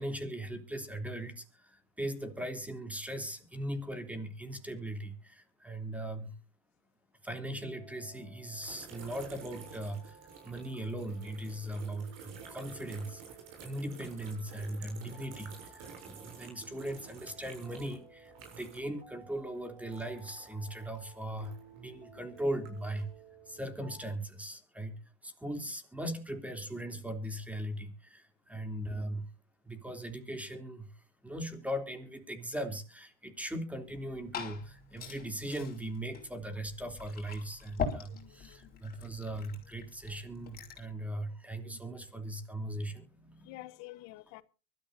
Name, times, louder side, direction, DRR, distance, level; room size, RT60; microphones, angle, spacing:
voice 1, 0.0-6.3 7.2-10.2 10.4-13.2 13.6-23.1 23.5-29.3 29.6-43.6, right 1 dB, 5° right, 3.1 m, -39 dB
sound 1, 7.6-24.1, right 4 dB, 25° right, 3.8 m, -57 dB
sound 2, 8.6-19.0 19.3-21.8 22.3-23.1, right 5 dB, 60° right, 7.5 m, -51 dB
Liquid, 33.8-40.9, left 5 dB, 30° left, 5.0 m, -43 dB
voice 2, 38.1-38.8 41.6-41.8 43.4-44.4, left 19 dB, 65° left, 1.0 m, -50 dB
24.0 x 13.5 x 2.7 m
supercardioid pair, 105°, 29 cm